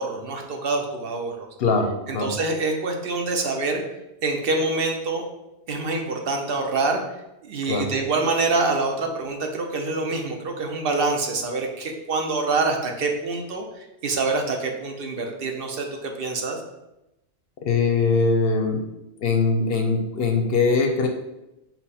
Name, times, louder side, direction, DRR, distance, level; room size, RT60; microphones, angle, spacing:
voice 1, 0.0-1.5 2.1-3.8 4.2-5.2 5.7-7.0 7.4-16.6, right 3 dB, 60° right, 2 dB, 0.8 m, -26 dB
voice 2, 1.6-2.3 7.7-7.9 17.6-18.9 19.2-21.1, left 4 dB, 65° left, 4 dB, 0.7 m, -22 dB
5.6 x 2.1 x 4.1 m, 0.92 s
omnidirectional pair, 1.2 m